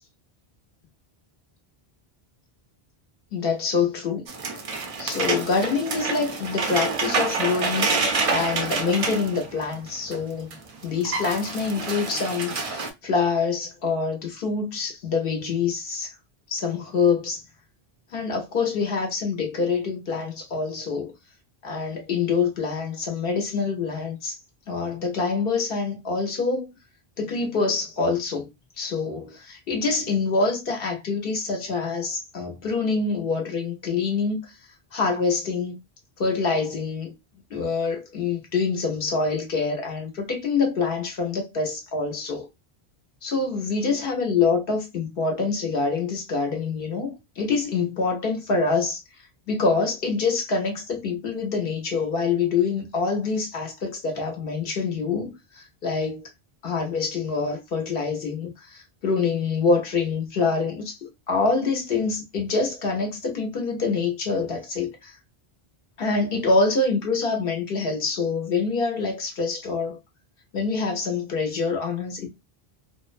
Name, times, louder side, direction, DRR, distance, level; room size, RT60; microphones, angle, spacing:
voice 1, 3.3-4.3 5.0-10.5 10.8-16.1 16.5-17.4 18.1-21.1 21.6-24.4 24.7-26.7 27.2-28.5 28.8-34.6 34.9-35.8 36.2-37.1 37.5-42.5 43.2-49.0 49.5-56.3 56.6-65.2 66.0-70.0 70.5-72.3, left 4 dB, 65° left, 0.9 m, -26 dB
sound 1, 4.3-10.2 10.5-10.6 10.8-12.9, right 4 dB, 55° right, 0.4 m, -27 dB
2.6 x 2.0 x 2.4 m
omnidirectional pair, 1.1 m